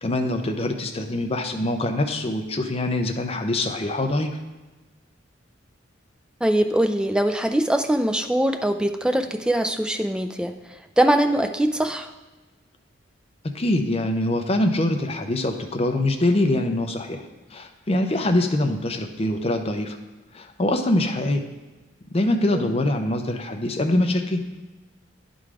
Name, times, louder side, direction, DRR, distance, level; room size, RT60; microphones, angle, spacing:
voice 1, 0.0-4.4 13.4-17.2 17.5-20.0 20.3-21.4 22.1-24.4, left 1 dB, 30° left, 5 dB, 0.6 m, -24 dB
voice 2, 6.4-10.5 11.0-12.1 22.5-22.6, right 1 dB, 5° right, 7 dB, 0.3 m, -22 dB
10.0 x 3.9 x 4.8 m, 1.2 s
head